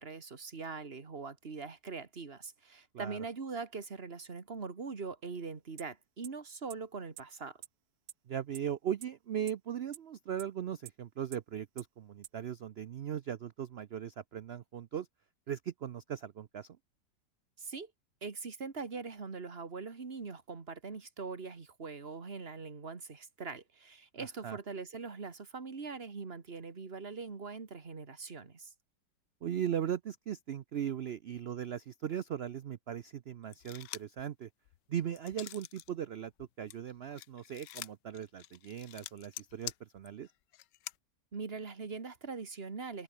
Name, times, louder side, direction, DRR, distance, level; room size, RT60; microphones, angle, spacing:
voice 1, 0.0-7.6 17.6-17.9 18.2-28.7 41.3-43.0, right 4 dB, 35° right, 2.0 m, -42 dB
sound 1, 5.8-5.9 6.2-6.3 6.7-6.8 7.2-7.3 7.6-7.7 8.1-8.2 8.5-8.6 9.0-9.1 9.5-9.6 9.9-10.0 10.4-10.5 10.9-11.0 11.3-11.4 11.8-11.9 12.2-12.3, right 12 dB, 65° right, 1.2 m, -45 dB
voice 2, 8.3-15.1 15.5-16.8 24.2-24.6 29.4-34.5 34.9-40.3, right 9 dB, 85° right, 0.5 m, -38 dB
sound 2, 33.5-34.2 34.7-35.9 36.2-41.0, left 14 dB, 85° left, 1.3 m, -46 dB
omnidirectional pair, 1.9 m